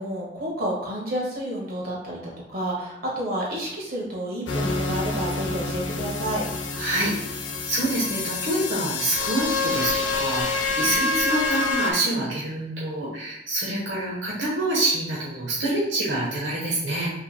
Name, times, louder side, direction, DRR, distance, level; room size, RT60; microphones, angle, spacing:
voice 1, 0.0-6.5 10.8-10.9, right 1 dB, 55° right, -3 dB, 1.6 m, -30 dB
sound 1, 4.5-11.9, left 3 dB, 85° left, 0.7 m, -27 dB
voice 2, 6.8-7.1 7.7-17.1, right 1 dB, 80° right, -5 dB, 1.2 m, -26 dB
6.0 x 3.5 x 2.2 m, 0.85 s
head